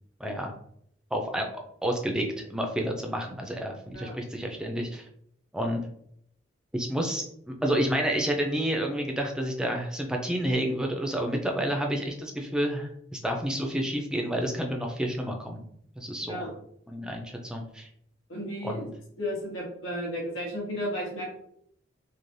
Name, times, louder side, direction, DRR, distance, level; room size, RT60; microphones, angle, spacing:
voice 1, 0.2-0.5 1.1-1.5 1.8-5.0 5.5-5.9 6.7-15.7 16.0-16.5 16.9-17.9 18.6-18.9, equal, 5° right, 2 dB, 0.3 m, -30 dB
voice 2, 18.3-18.9 19.2-21.3, equal, 85° left, -2 dB, 1.1 m, -33 dB
3.1 x 2.1 x 2.6 m, 0.70 s
head